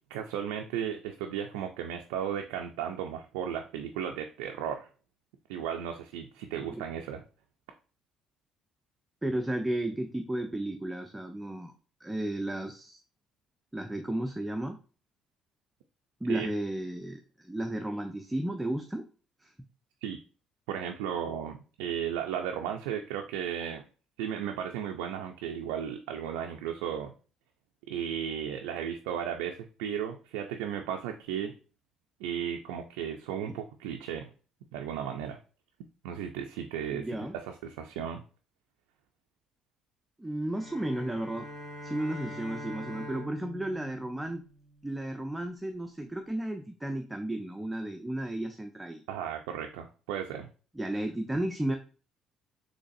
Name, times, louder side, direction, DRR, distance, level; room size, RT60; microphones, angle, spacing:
voice 1, 0.1-4.9 5.5-7.2 16.3-16.5 20.0-20.2 20.7-23.8 24.2-27.1 27.9-31.5 32.2-34.3 34.7-35.4 36.0-37.1 37.3-38.2 49.1-50.5, right 9 dB, 90° right, 3 dB, 0.3 m, -35 dB
voice 2, 9.2-11.7 12.0-13.0 13.7-14.8 16.2-19.0 19.4-19.5 33.5-33.6 36.9-37.3 40.2-41.5 41.8-44.4 44.8-49.0 50.7-51.8, right 1 dB, 10° right, 5 dB, 0.4 m, -33 dB
sound 1, 40.5-45.0, equal, 55° left, 1.9 m, -44 dB
3.8 x 3.2 x 2.5 m, 0.37 s
supercardioid pair, 75°, 0 cm